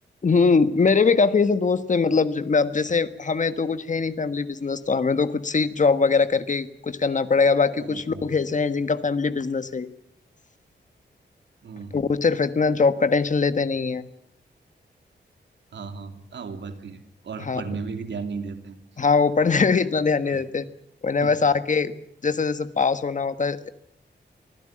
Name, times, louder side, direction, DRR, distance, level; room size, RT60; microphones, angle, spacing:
voice 1, 0.2-9.9 11.9-14.0 17.4-17.6 19.0-20.7 21.0-21.9 22.2-23.7, left 4 dB, 45° left, 11 dB, 1.5 m, -22 dB
voice 2, 7.7-8.3 11.6-12.0 15.7-17.0 17.2-18.8 20.3-20.4 21.2-21.3, right 5 dB, 90° right, 7 dB, 2.9 m, -35 dB
25.0 x 15.5 x 8.9 m, 0.71 s
wide cardioid pair, 120°, 18 cm